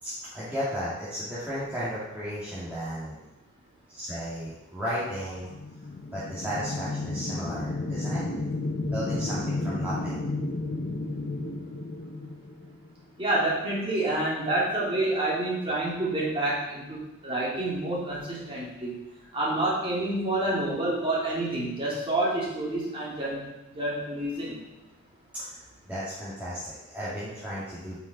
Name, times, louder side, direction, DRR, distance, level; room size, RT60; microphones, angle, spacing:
voice 1, 0.0-3.2 3.9-5.5 6.1-8.2 8.9-10.2 25.4-28.0, equal, 5° right, -11 dB, 2.2 m, -34 dB
sound 1, 5.5-13.0, left 2 dB, 35° left, 0.6 m, -32 dB
voice 2, 13.2-18.9 19.3-23.4 23.7-24.6, right 1 dB, 25° right, -6 dB, 2.6 m, -28 dB
9.1 x 5.6 x 4.1 m, 0.98 s
head